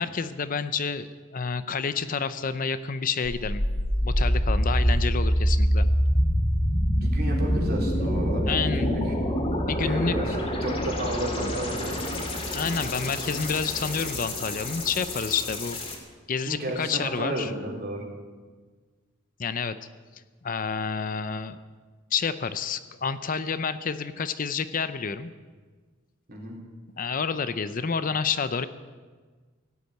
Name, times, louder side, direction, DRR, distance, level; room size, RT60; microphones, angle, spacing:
voice 1, 0.0-3.6 4.0-5.9 8.5-8.9 9.7-10.1 11.4-11.7 12.5-15.8 16.3-17.5 19.4-19.8 20.4-21.6 22.1-25.3 27.0-28.7, left 5 dB, 45° left, 12 dB, 0.6 m, -29 dB
sound 1, 3.2-16.0, equal, 25° left, 2.4 m, -26 dB
voice 2, 7.0-9.0 9.8-12.1 16.4-18.0 26.3-26.6, right 1 dB, 50° right, -1 dB, 3.6 m, -33 dB
16.0 x 8.4 x 9.2 m, 1.5 s
head